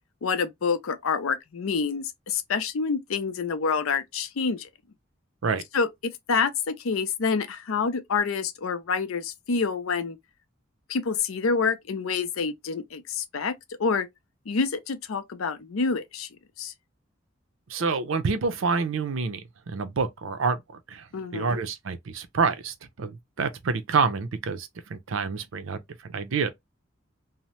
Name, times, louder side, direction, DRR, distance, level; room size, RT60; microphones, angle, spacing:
voice 1, 0.2-4.7 5.7-10.2 10.9-13.5 13.8-14.1 14.5-16.3 16.6-16.7 21.1-21.5, left 5 dB, 90° left, 0.5 m, -27 dB
voice 2, 17.7-21.1 21.3-26.5, right 5 dB, 75° right, 0.5 m, -28 dB
2.8 x 2.0 x 3.0 m
head